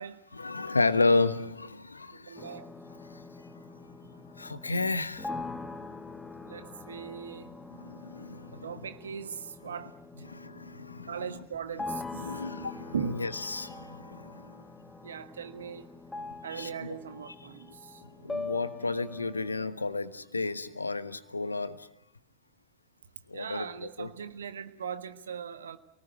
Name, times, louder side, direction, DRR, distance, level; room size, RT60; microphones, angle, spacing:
voice 1, 0.3-2.5 3.1-3.2 4.4-5.3 7.7-8.9 10.2-11.4 12.1-14.6 16.2-17.0 18.2-21.9 23.3-24.1, left 3 dB, 80° left, 13 dB, 1.2 m, -32 dB
voice 2, 2.1-2.7 6.5-7.6 8.5-9.9 11.1-12.3 12.9-13.3 15.0-15.9 16.4-18.0 23.3-25.8, right 7 dB, 65° right, 10 dB, 1.4 m, -39 dB
sound 1, 2.4-19.7, left 3 dB, 5° left, 1.6 m, -43 dB
29.0 x 19.0 x 9.4 m, 0.84 s
figure-of-eight pair, 90°, 0 cm